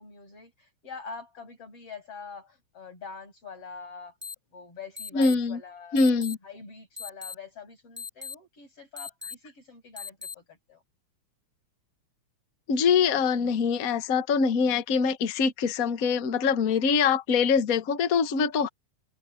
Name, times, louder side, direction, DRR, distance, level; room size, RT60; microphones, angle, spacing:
voice 1, 0.0-4.2 4.5-6.2 6.4-10.8, left 5 dB, 45° left, 8.9 m, -45 dB
sound 1, 4.2-4.3 5.0-5.3 6.0-6.3 7.0-7.3 8.0-8.3 9.0-9.3 10.0-10.3, left 5 dB, 10° right, 0.7 m, -38 dB
voice 2, 5.1-5.6 5.9-6.4 12.7-18.7, left 5 dB, 85° left, 0.7 m, -24 dB
omnidirectional pair, 3.6 m